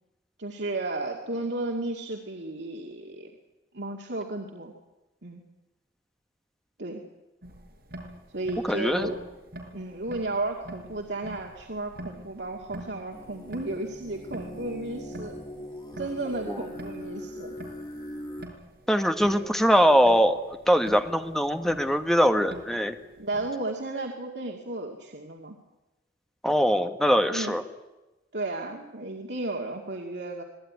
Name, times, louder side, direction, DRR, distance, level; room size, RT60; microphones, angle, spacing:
voice 1, 0.4-3.3 3.7-4.7 5.2-5.4 6.8-7.0 8.3-9.2 9.7-15.4 16.0-17.6 19.3-19.5 23.2-25.6 27.3-27.5 28.3-30.4, right 2 dB, 80° right, 0 dB, 2.3 m, -33 dB
sound 1, 7.4-23.5, right 1 dB, 60° right, 6.0 m, -46 dB
voice 2, 8.7-9.1 16.5-16.6 18.9-20.4 20.7-23.0 26.4-27.6, equal, 5° left, 7 dB, 1.4 m, -22 dB
sound 2, 13.1-18.5, equal, 25° left, 2.6 m, -41 dB
26.0 x 18.5 x 9.6 m, 1.1 s
head